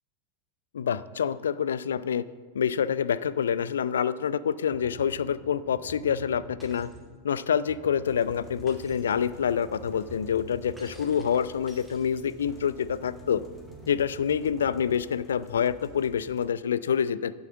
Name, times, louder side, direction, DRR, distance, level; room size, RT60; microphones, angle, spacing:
voice 1, 0.7-2.3 2.5-6.9 7.2-13.4 13.9-17.3, left 8 dB, 65° left, 18 dB, 0.4 m, -27 dB
sound 1, 4.7-11.7 12.5-15.0, right 2 dB, 20° right, 1.9 m, -47 dB
Shatter, 6.6-7.0 8.7-9.2 10.8-12.5, equal, ahead, 2.5 m, -53 dB
sound 2, 8.0-16.5, left 2 dB, 20° left, 1.7 m, -54 dB
9.1 x 7.1 x 8.0 m, 1.5 s
figure-of-eight pair, 90°, 0 cm